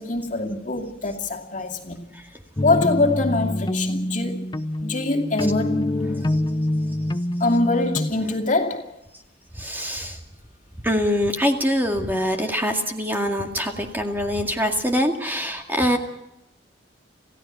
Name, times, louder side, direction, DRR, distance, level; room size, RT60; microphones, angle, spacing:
voice 1, 0.0-2.2 2.6-4.5 4.8-5.9 7.4-9.0, left 2 dB, 40° left, 2.6 m, -24 dB
sound 1, 2.6-8.1, left 1 dB, 25° left, 0.6 m, -25 dB
voice 2, 9.5-10.2 10.8-16.0, equal, 10° right, 2.1 m, -24 dB
28.0 x 16.0 x 6.1 m
head